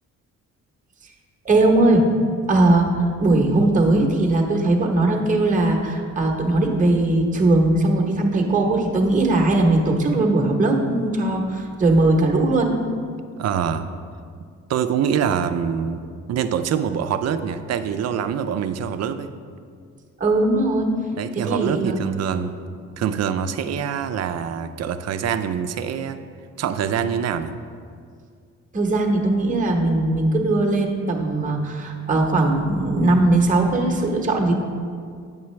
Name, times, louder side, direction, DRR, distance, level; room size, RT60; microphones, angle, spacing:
voice 1, 1.4-2.0 2.5-12.7 20.2-20.9 21.4-22.0 28.7-34.5, right 2 dB, 25° right, 1 dB, 1.0 m, -19 dB
voice 2, 13.4-13.9 14.7-16.0 16.3-19.3 21.2-22.5 23.0-26.2 26.6-27.5, right 8 dB, 60° right, 10 dB, 0.5 m, -24 dB
9.0 x 5.7 x 3.2 m, 2.2 s
cardioid pair, 90°, 30 cm